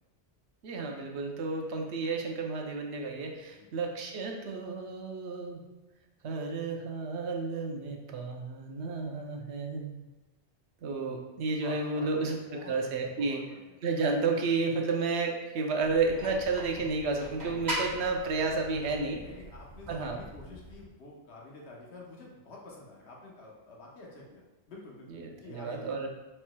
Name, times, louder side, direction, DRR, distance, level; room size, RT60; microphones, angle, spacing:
voice 1, 0.6-5.6 6.2-10.0 10.8-12.4 12.7-13.4 13.8-19.2 19.9-20.2 25.1-26.1, right 3 dB, 80° right, 2 dB, 0.9 m, -31 dB
voice 2, 11.6-13.8 19.2-26.1, left 2 dB, 85° left, -3 dB, 1.2 m, -49 dB
sound 1, 15.8-20.8, right 1 dB, 45° right, 1.2 m, -40 dB
4.4 x 4.3 x 2.2 m, 1.1 s
omnidirectional pair, 1.1 m